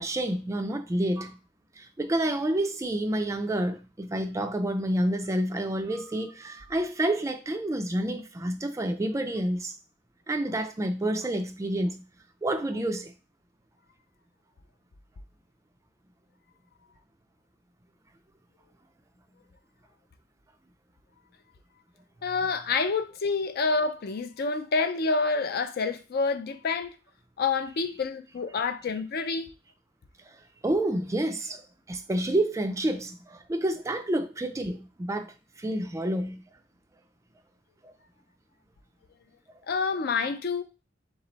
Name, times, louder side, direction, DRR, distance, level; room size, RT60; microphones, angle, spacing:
voice 1, 0.0-1.4 1.8-9.7 10.3-12.0 12.4-13.1 28.5-28.6 30.3-30.4 30.6-31.6 31.9-36.4 37.8-37.9, right 1 dB, 15° right, 0.3 m, -29 dB
voice 2, 22.2-27.0 27.4-29.5 39.7-40.6, left 4 dB, 50° left, 0.4 m, -28 dB
3.6 x 3.1 x 3.9 m
head